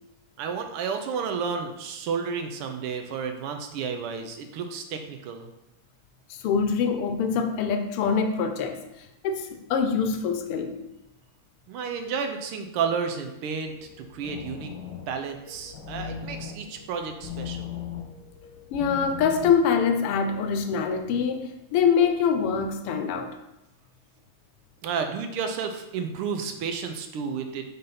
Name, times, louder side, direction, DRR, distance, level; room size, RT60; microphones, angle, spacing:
voice 1, 0.4-5.5 11.7-13.7 14.1-14.7 15.1-17.7 24.8-27.6, right 6 dB, 85° right, 1.7 m, -31 dB
voice 2, 6.3-8.8 9.2-10.8 18.7-23.4, left 6 dB, 90° left, 1.6 m, -24 dB
sound 1, 13.7-19.5, left 7 dB, 70° left, 2.2 m, -39 dB
5.3 x 3.9 x 5.7 m
omnidirectional pair, 2.4 m